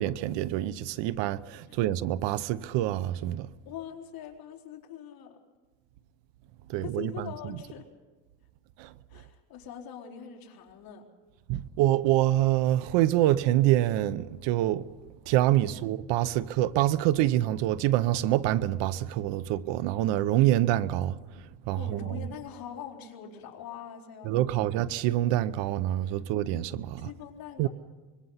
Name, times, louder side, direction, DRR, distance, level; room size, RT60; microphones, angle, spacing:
voice 1, 0.0-3.5 6.7-7.1 8.8-8.9 11.5-14.8 15.3-21.2 21.7-22.0 24.3-27.1 27.6-27.7, right 14 dB, 75° right, 0.9 m, -26 dB
voice 2, 3.6-5.4 6.7-7.9 9.1-11.1 15.6-15.9 21.7-24.5 26.2-26.3 27.0-27.7, left 8 dB, 50° left, 4.1 m, -43 dB
25.0 x 22.5 x 5.7 m
cardioid pair, 145°, 44 cm